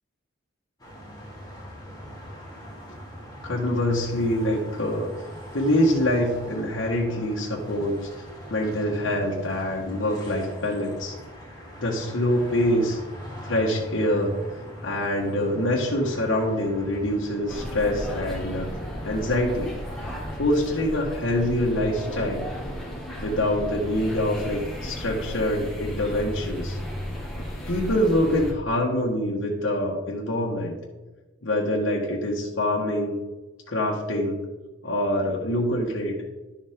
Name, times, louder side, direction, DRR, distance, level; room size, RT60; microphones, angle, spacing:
sound 1, 0.8-20.4, equal, 20° left, 3.0 m, -41 dB
voice 1, 3.4-5.1 5.5-8.1 8.5-11.1 11.8-13.0 13.4-14.3 14.8-18.7 19.0-19.7 20.3-22.4 23.2-26.8 27.7-30.8 31.4-33.2 33.7-34.5 34.8-36.2, left 1 dB, 80° left, -3 dB, 1.5 m, -25 dB
sound 2, 17.5-28.5, equal, ahead, 2.0 m, -34 dB
11.5 x 7.2 x 3.7 m, 1.1 s
head